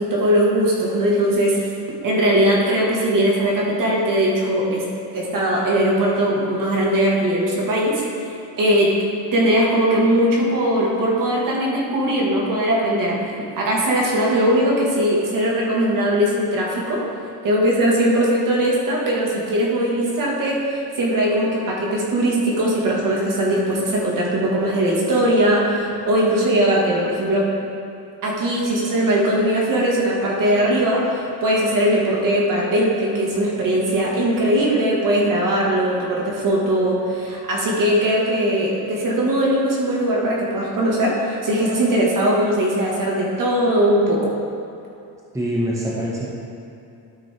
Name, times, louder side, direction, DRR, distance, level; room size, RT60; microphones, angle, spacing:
voice 1, 0.0-1.7 2.0-4.8 5.1-8.3 8.6-8.9 9.3-13.2 13.6-17.0 17.4-27.5 28.2-44.3, right 1 dB, 55° right, -4 dB, 1.9 m, -20 dB
voice 2, 45.3-46.3, equal, 10° right, -5 dB, 1.4 m, -24 dB
12.5 x 5.1 x 3.5 m, 2.7 s
cardioid pair, 100°, 40 cm